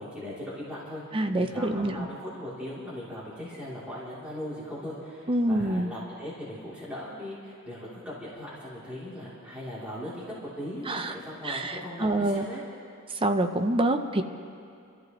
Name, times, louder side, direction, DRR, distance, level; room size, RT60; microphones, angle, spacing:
voice 1, 0.0-1.0 1.4-12.6, left 1 dB, 5° right, -10 dB, 3.1 m, -39 dB
voice 2, 1.1-2.1 5.3-5.9 10.9-11.1 11.4-12.4 13.2-14.2, right 1 dB, 25° right, 6 dB, 0.7 m, -26 dB
27.0 x 14.0 x 3.1 m, 2.5 s
head